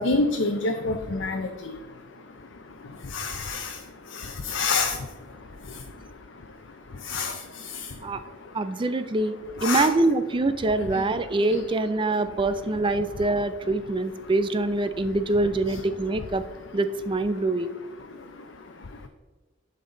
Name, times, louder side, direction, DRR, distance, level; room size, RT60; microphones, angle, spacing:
voice 1, 0.0-8.9 9.6-9.9 10.9-11.6 12.1-12.3 13.3-13.4 14.2-14.3 15.0-15.1 15.7-15.8 17.3-17.5 18.0-19.1, left 3 dB, 80° left, 4 dB, 0.6 m, -31 dB
voice 2, 8.5-9.3 9.6-16.4 16.7-17.7, right 2 dB, 25° right, 11 dB, 0.4 m, -24 dB
11.0 x 5.4 x 3.8 m, 1.2 s
head